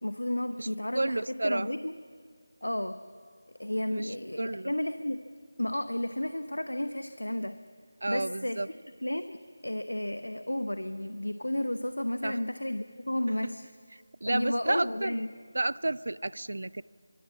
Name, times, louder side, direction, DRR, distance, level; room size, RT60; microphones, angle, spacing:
voice 1, 0.0-1.9 2.6-3.0 3.6-5.2 5.6-7.6 8.1-13.6 14.2-15.3, left 1 dB, 80° left, 10 dB, 0.9 m, -32 dB
voice 2, 0.9-1.7 3.9-4.7 8.0-8.7 12.2-12.4 13.3-13.5 13.9-15.2 15.5-16.8, right 2 dB, 60° right, 20 dB, 0.5 m, -31 dB
24.5 x 20.5 x 7.3 m, 2.1 s
figure-of-eight pair, 165°, 0 cm